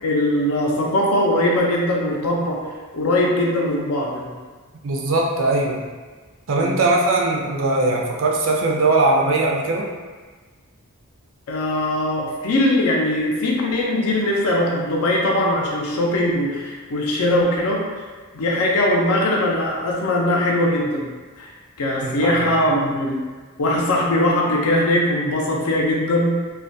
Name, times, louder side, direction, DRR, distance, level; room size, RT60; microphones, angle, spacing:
voice 1, 0.0-2.6 2.9-4.3 6.6-6.8 11.5-17.9 18.3-21.1 21.4-21.5 21.8-23.2 23.6-26.3, left 1 dB, 85° left, -2 dB, 0.5 m, -20 dB
voice 2, 4.8-5.8 6.5-9.9 22.0-22.6, right 2 dB, 65° right, -1 dB, 0.4 m, -20 dB
2.3 x 2.2 x 2.6 m, 1.4 s
head